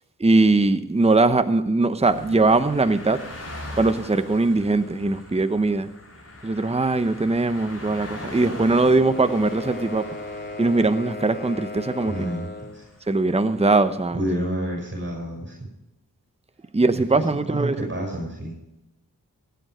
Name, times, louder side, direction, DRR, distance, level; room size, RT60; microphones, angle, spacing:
voice 1, 0.2-3.2 3.8-5.9 6.4-10.0 10.6-12.1 13.1-14.2 16.7-17.8, right 3 dB, 20° right, 10 dB, 0.9 m, -20 dB
sound 1, 2.0-13.6, left 1 dB, 45° left, 4.8 m, -41 dB
sound 2, 8.9-12.8, left 2 dB, 30° left, 2.8 m, -36 dB
voice 2, 12.1-12.8 14.1-15.5 17.1-18.5, right 1 dB, 35° right, 0 dB, 6.3 m, -29 dB
17.0 x 9.4 x 4.9 m, 0.91 s
cardioid pair, 55°, 35 cm